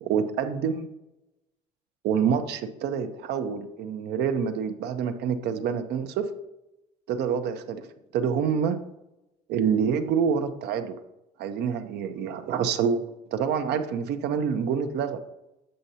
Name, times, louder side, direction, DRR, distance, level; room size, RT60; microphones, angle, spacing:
voice 1, 0.0-0.9 2.0-6.3 7.1-7.9 8.1-8.8 9.5-11.0 11.4-13.1 13.3-15.2, right 7 dB, 75° right, 9 dB, 0.7 m, -27 dB
7.6 x 6.6 x 2.8 m, 0.93 s
cardioid pair, 110°, 17 cm